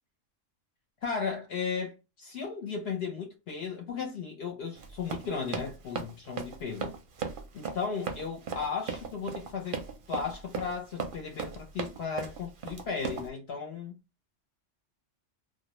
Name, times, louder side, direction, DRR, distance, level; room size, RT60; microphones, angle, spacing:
voice 1, 1.0-6.9 7.5-13.9, left 5 dB, 65° left, 0.8 m, -35 dB
Run, 4.7-13.3, right 6 dB, 55° right, 0.6 m, -37 dB
2.3 x 2.1 x 2.9 m
omnidirectional pair, 1.3 m